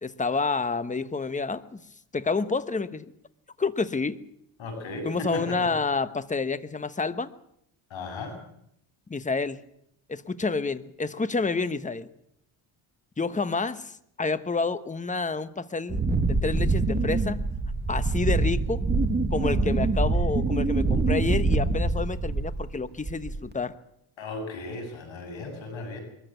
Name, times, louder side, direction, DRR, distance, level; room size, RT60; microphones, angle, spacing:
voice 1, 0.0-1.8 2.1-3.1 3.6-4.2 5.0-7.3 9.1-9.6 10.1-12.1 13.2-17.4 17.9-18.8 19.3-23.7, left 4 dB, 15° left, 12 dB, 1.1 m, -29 dB
voice 2, 4.6-5.6 7.9-8.4 19.4-19.6 24.2-26.0, left 2 dB, 70° left, 4 dB, 7.6 m, -36 dB
Wind, 15.9-22.7 23.0-23.5, right 3 dB, 20° right, 2.1 m, -25 dB
23.0 x 14.0 x 9.2 m, 0.75 s
cardioid pair, 100°, 48 cm